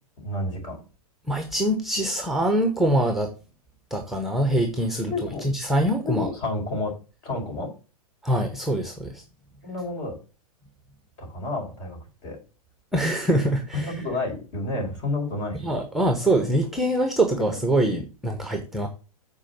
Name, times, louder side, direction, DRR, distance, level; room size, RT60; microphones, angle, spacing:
voice 1, 0.2-0.8 5.1-5.5 6.0-6.9 7.2-7.7 9.6-10.1 11.2-12.4 13.7-15.7, left 2 dB, 40° left, 2 dB, 4.6 m, -30 dB
voice 2, 1.3-3.3 3.9-6.3 8.2-9.2 12.9-14.0 15.5-18.9, right 1 dB, ahead, 5 dB, 1.0 m, -24 dB
7.5 x 4.7 x 6.9 m, 0.34 s
figure-of-eight pair, 110°, 19 cm